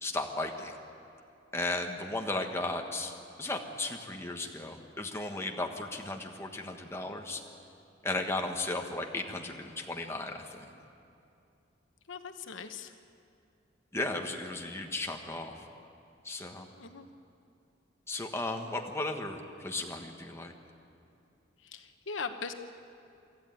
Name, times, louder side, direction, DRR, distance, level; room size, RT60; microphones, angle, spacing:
voice 1, 0.0-0.7 1.5-7.4 8.0-10.7 13.9-15.7 16.2-16.7 18.1-20.5, left 2 dB, 15° left, 2 dB, 1.4 m, -35 dB
voice 2, 12.1-12.9 16.8-17.1 21.6-22.5, left 5 dB, 75° left, 8 dB, 1.0 m, -40 dB
24.5 x 13.5 x 9.2 m, 2.6 s
head